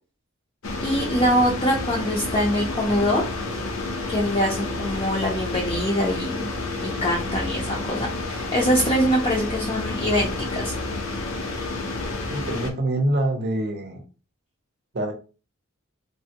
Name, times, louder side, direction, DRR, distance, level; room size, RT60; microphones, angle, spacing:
sound 1, 0.6-12.7, left 2 dB, 70° left, 0.6 m, -30 dB
voice 1, 0.8-3.2 4.1-6.5 6.8-10.7, equal, 25° left, -3 dB, 0.5 m, -23 dB
voice 2, 12.3-14.0 14.9-15.1, right 1 dB, 50° right, 4 dB, 0.6 m, -25 dB
3.3 x 2.2 x 2.8 m, 0.34 s
head